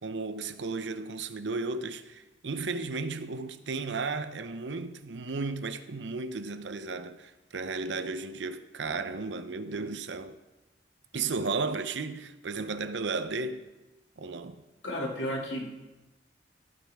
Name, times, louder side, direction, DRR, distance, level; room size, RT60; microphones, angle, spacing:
voice 1, 0.0-10.4 11.1-13.7 14.2-14.6, right 4 dB, 85° right, 0.7 m, -34 dB
voice 2, 14.8-15.8, equal, 90° left, 2.4 m, -33 dB
15.5 x 9.2 x 3.6 m
head